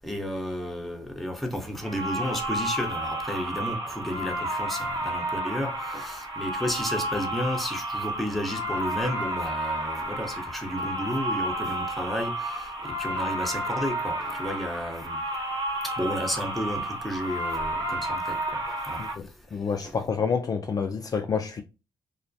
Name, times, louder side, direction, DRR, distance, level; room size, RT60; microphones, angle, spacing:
voice 1, 0.0-15.2 15.8-19.0 19.8-19.9, left 1 dB, ahead, 0.7 m, -32 dB
sound 1, 1.8-19.1, right 1 dB, 55° right, 1.0 m, -31 dB
voice 2, 19.0-21.6, left 6 dB, 40° left, 0.3 m, -29 dB
2.3 x 2.0 x 2.6 m
supercardioid pair, 60°, 10 cm